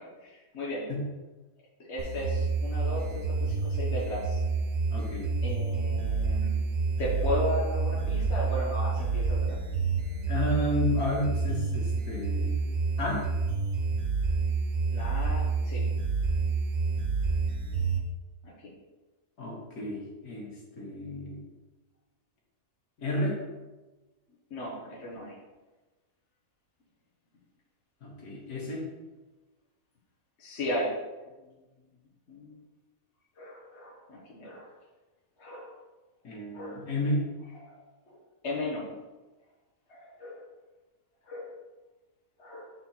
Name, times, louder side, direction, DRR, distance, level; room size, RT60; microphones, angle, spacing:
voice 1, 0.2-0.9 1.9-4.4 5.4-6.6 7.0-9.6 14.9-15.9 18.4-18.7 24.5-25.4 30.4-30.9 31.4-31.5 32.3-32.6 33.4-34.7 35.4-35.7 36.5-36.9 37.5-37.7 38.1-38.2 38.4-38.9 39.9-40.4 41.2-41.5 42.4-42.7, left 1 dB, 50° left, -5 dB, 1.3 m, -35 dB
sound 1, 2.0-18.0, right 4 dB, 85° right, 1.6 m, -28 dB
voice 2, 4.9-5.3 10.3-12.5 13.0-13.2 19.4-21.4 23.0-23.4 28.0-28.9 36.2-37.2, left 1 dB, 70° left, -3 dB, 2.0 m, -31 dB
4.4 x 4.4 x 5.6 m, 1.2 s
omnidirectional pair, 1.7 m